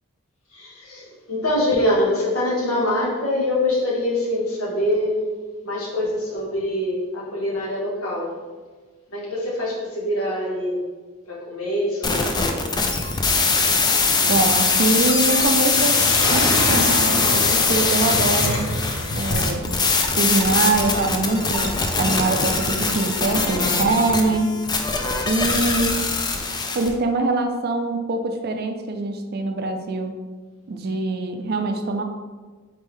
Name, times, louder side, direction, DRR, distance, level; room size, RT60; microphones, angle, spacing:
voice 1, 0.5-5.2 5.6-8.4 9.1-10.8 11.3-12.6, left 1 dB, 80° left, -4 dB, 1.4 m, -24 dB
sound 1, 12.0-26.9, left 4 dB, 20° left, 0.3 m, -22 dB
voice 2, 14.3-16.0 16.3-18.7 19.1-19.7 20.1-24.6 25.3-26.1 26.7-30.2 30.7-32.0, right 3 dB, 50° right, 5 dB, 0.4 m, -23 dB
Sink (filling or washing), 15.7-23.6, left 1 dB, 65° left, 0.8 m, -28 dB
4.4 x 3.5 x 3.2 m, 1.4 s
head